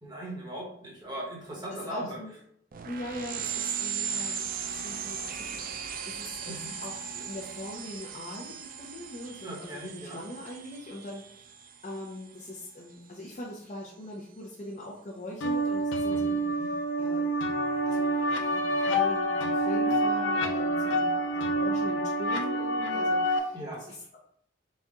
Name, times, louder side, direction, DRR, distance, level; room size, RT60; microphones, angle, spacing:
voice 1, 0.0-2.2 6.5-6.7 9.4-10.2 16.1-16.7 23.5-23.8, right 1 dB, 20° right, -4 dB, 1.3 m, -39 dB
voice 2, 1.7-2.3 2.8-11.5 11.8-16.7 17.0-17.6 17.8-24.2, left 1 dB, 40° left, -3 dB, 0.7 m, -42 dB
sound 1, 2.7-12.9, right 7 dB, 50° right, 0.4 m, -38 dB
sound 2, 15.4-23.4, right 1 dB, 85° left, 0.6 m, -27 dB
4.2 x 2.4 x 3.6 m, 0.70 s
head